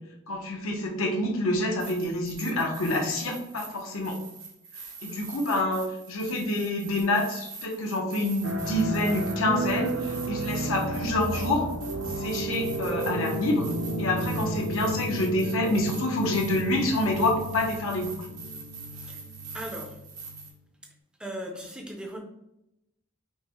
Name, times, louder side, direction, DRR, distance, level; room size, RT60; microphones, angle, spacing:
voice 1, 0.3-4.2 5.0-11.7 12.1-13.7 14.0-18.1, left 1 dB, 70° left, 1 dB, 0.7 m, -27 dB
sound 1, 1.8-20.5, right 5 dB, 80° right, 1.1 m, -44 dB
sound 2, 8.4-20.5, right 1 dB, 60° right, 0.4 m, -33 dB
voice 2, 18.9-19.2 19.5-20.0 21.2-22.2, equal, 5° right, 1 dB, 0.5 m, -38 dB
5.5 x 2.1 x 2.9 m, 0.85 s
head